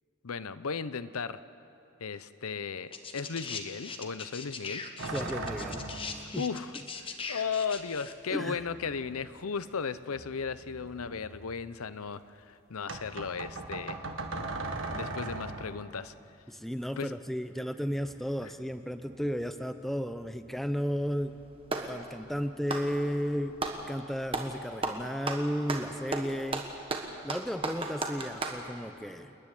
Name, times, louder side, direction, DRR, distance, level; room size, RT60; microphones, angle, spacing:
voice 1, 0.2-1.4 2.0-4.8 6.4-6.7 7.3-14.0 15.0-16.1 17.0-17.1 18.4-18.5, left 5 dB, 85° left, 14 dB, 0.7 m, -35 dB
sound 1, 2.9-8.1 9.2-9.3, left 5 dB, 25° left, 1.1 m, -40 dB
sound 2, 5.0-6.3 7.7-7.8 8.5-9.8 10.1-11.6 12.9-15.9 17.9-18.9 19.1-19.6 20.0-21.0, right 2 dB, 65° right, 1.8 m, -40 dB
voice 2, 5.1-5.9 6.3-6.5 8.3-8.7 16.5-21.4 21.8-23.6 23.9-26.6 27.2-29.4, equal, ahead, 9 dB, 0.6 m, -34 dB
Clapping, 21.0-22.0 22.6-23.8 24.3-24.6 24.8-28.6, right 3 dB, 25° right, 1.4 m, -34 dB
28.5 x 10.5 x 10.0 m, 2.7 s
head